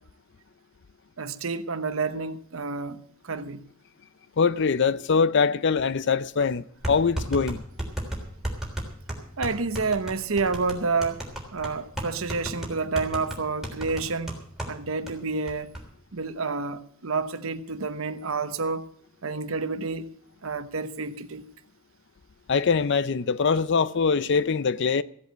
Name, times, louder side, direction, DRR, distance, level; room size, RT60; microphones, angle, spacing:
voice 1, 1.2-3.7 9.4-15.7 16.1-18.9 19.2-20.1 20.4-21.5, right 4 dB, 70° right, 1.0 m, -29 dB
voice 2, 4.4-7.6 22.5-25.0, left 5 dB, 55° left, 0.5 m, -23 dB
sound 1, 6.8-14.8 15.1-15.2 15.5-15.8, right 1 dB, ahead, 3.4 m, -34 dB
15.5 x 8.2 x 7.9 m
head